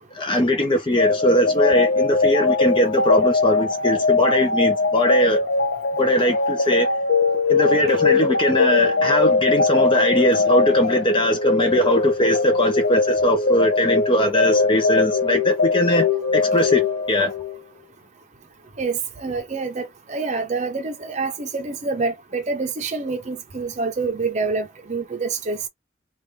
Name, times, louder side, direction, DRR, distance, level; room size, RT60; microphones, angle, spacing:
voice 1, 0.1-5.4 6.0-6.9 7.5-16.1 16.3-16.8 17.1-17.3, equal, 30° left, 0.7 m, -20 dB
sound 1, 1.0-17.6, left 3 dB, 70° left, 1.0 m, -21 dB
voice 2, 18.8-25.6, right 4 dB, 40° right, 0.7 m, -27 dB
3.4 x 2.5 x 3.3 m
head